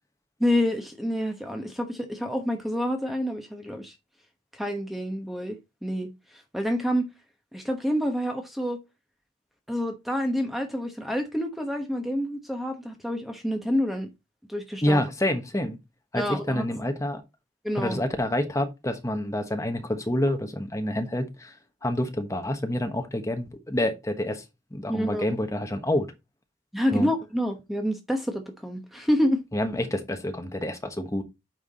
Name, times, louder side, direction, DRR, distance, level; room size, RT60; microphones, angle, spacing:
voice 1, 0.4-3.9 4.5-5.6 5.8-7.1 7.5-8.8 9.7-14.1 14.5-15.0 16.1-16.8 17.6-18.0 24.9-25.2 26.7-29.4, equal, ahead, 1.0 m, -28 dB
voice 2, 14.8-15.8 16.1-17.2 17.8-21.5 21.8-24.4 24.7-26.1 26.9-27.1 29.5-31.2, left 1 dB, 15° left, 1.2 m, -27 dB
9.1 x 4.8 x 3.9 m
head